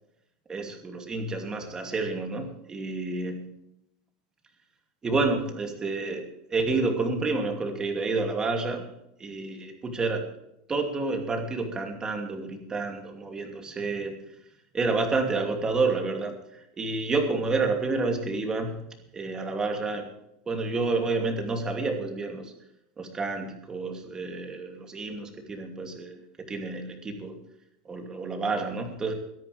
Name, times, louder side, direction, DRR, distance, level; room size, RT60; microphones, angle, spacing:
voice 1, 0.5-3.5 5.0-8.9 9.2-10.2 10.7-14.1 14.7-18.8 19.1-20.1 20.5-22.5 23.0-26.2 26.5-27.4 27.8-29.1, right 3 dB, 15° right, 4 dB, 2.7 m, -29 dB
23.0 x 10.5 x 3.4 m, 0.80 s
supercardioid pair, 155°, 4 cm